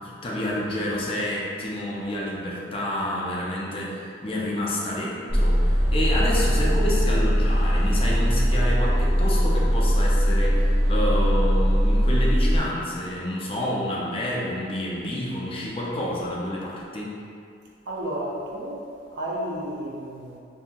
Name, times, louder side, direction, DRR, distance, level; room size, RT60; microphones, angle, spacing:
voice 1, 0.0-17.2, left 1 dB, 30° left, -5 dB, 0.4 m, -29 dB
sound 1, 5.3-12.6, equal, ahead, 0.8 m, -20 dB
voice 2, 17.9-20.4, right 1 dB, 70° right, -3 dB, 0.5 m, -32 dB
2.7 x 2.6 x 2.3 m, 2.4 s
head